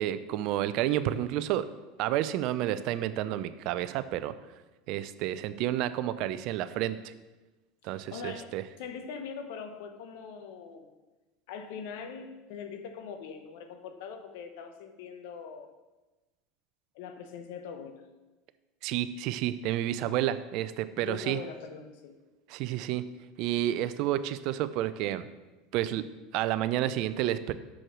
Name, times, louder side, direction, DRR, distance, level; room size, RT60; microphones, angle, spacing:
voice 1, 0.0-1.7 2.0-4.3 4.9-7.1 7.8-8.6 18.8-21.4 22.5-23.1 23.4-25.3 25.7-26.0 26.3-27.5, right 12 dB, 60° right, 14 dB, 0.5 m, -30 dB
voice 2, 7.8-10.9 11.5-15.7 16.9-18.0 21.1-22.1, left 6 dB, 70° left, 7 dB, 1.0 m, -42 dB
6.3 x 6.2 x 6.0 m, 1.2 s
hypercardioid pair, 95°, 0 cm